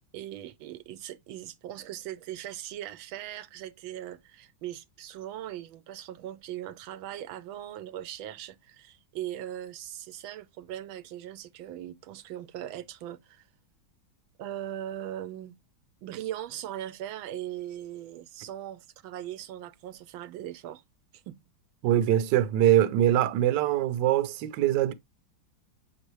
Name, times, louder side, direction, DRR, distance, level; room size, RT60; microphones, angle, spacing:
voice 1, 0.1-13.5 14.4-15.5 16.0-20.8 21.1-21.3, right 12 dB, 85° right, 1.4 m, -39 dB
voice 2, 21.8-24.9, right 12 dB, 70° right, 1.3 m, -23 dB
6.7 x 5.4 x 3.1 m
omnidirectional pair, 2.2 m